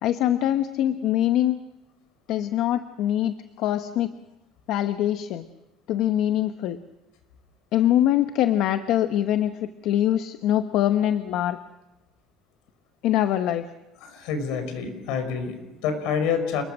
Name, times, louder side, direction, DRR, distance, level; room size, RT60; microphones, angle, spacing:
voice 1, 0.0-1.6 2.3-4.1 4.7-5.4 5.9-6.8 7.7-11.6 13.0-13.7, left 12 dB, 65° left, 9 dB, 1.0 m, -23 dB
voice 2, 14.0-16.6, left 6 dB, 85° left, 8 dB, 5.5 m, -27 dB
29.0 x 21.0 x 6.4 m, 1.0 s
cardioid pair, 155°, 0 cm